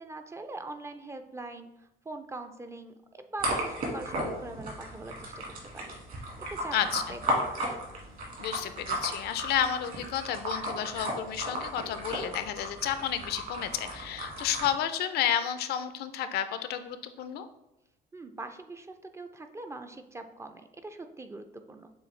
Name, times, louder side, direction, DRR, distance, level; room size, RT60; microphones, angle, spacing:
voice 1, 0.0-5.9 6.5-7.5 18.1-21.9, right 2 dB, 15° right, 7 dB, 0.3 m, -43 dB
sound 1, 3.4-14.7, right 1 dB, 55° right, 1.6 m, -35 dB
voice 2, 6.7-7.2 8.4-17.5, left 9 dB, 70° left, 11 dB, 0.4 m, -31 dB
7.0 x 2.3 x 3.1 m, 0.91 s
cardioid pair, 110°, 17 cm